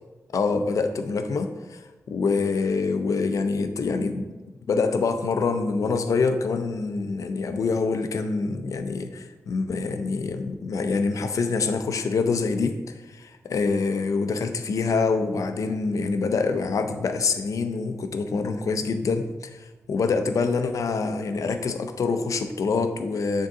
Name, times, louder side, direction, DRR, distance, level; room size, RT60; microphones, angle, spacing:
voice 1, 0.3-4.3 4.7-23.5, left 4 dB, 80° left, 8 dB, 0.5 m, -26 dB
9.2 x 3.7 x 3.7 m, 1.2 s
wide cardioid pair, 140°, 6 cm